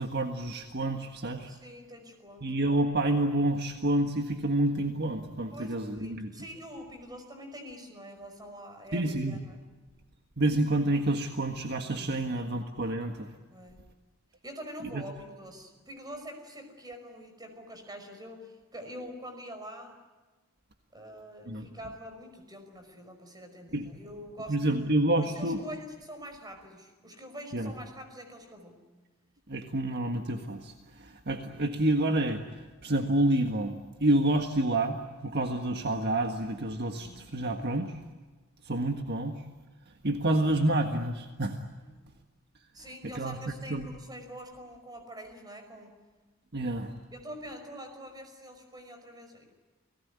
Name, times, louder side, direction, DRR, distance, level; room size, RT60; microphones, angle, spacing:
voice 1, 0.0-1.5 2.4-6.3 8.9-9.4 10.4-13.3 14.9-15.0 21.5-21.7 23.7-23.9 24.5-25.6 27.5-27.7 29.5-37.9 38.6-39.4 40.0-41.6 43.1-43.4 43.7-43.9 46.5-46.9, right 1 dB, 50° right, 5 dB, 1.6 m, -28 dB
voice 2, 1.5-2.5 5.5-9.6 13.5-13.9 14.4-20.0 20.9-28.9 36.9-37.4 41.8-42.2 42.7-46.0 47.1-49.5, equal, 20° right, 6 dB, 5.5 m, -45 dB
30.0 x 19.0 x 9.7 m, 1.3 s
head